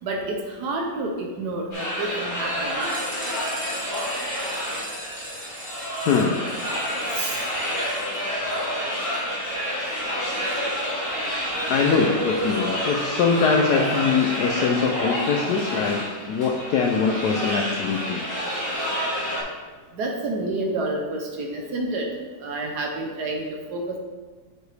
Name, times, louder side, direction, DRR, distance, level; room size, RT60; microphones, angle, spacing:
voice 1, 0.0-2.8 7.1-7.5 19.9-22.1 22.4-24.0, right 2 dB, 65° right, 1 dB, 1.1 m, -29 dB
sound 1, 1.7-19.4, equal, 35° left, 2.4 m, -28 dB
sound 2, 2.7-8.8 9.1-9.2 9.5-9.6 10.0-10.1 10.4-10.5, right 1 dB, 20° right, 0.8 m, -40 dB
voice 2, 6.0-6.5 11.7-18.2, left 5 dB, 75° left, 1 dB, 0.9 m, -23 dB
6.7 x 6.5 x 3.3 m, 1.4 s
omnidirectional pair, 2.2 m